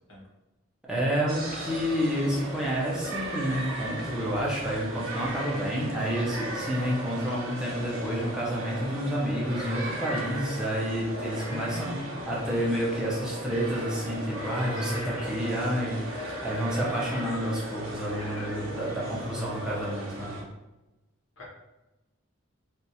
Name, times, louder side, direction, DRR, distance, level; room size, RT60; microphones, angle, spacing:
voice 1, 0.9-12.0 12.3-20.3, equal, 5° right, -6 dB, 0.8 m, -29 dB
sound 1, 1.3-20.4, right 1 dB, 85° right, 0.8 m, -36 dB
voice 2, 11.4-12.6 13.0-13.4 14.8-15.5 18.2-18.4 21.4-21.5, left 2 dB, 75° left, -4 dB, 1.2 m, -44 dB
3.4 x 2.6 x 2.8 m, 1.0 s
head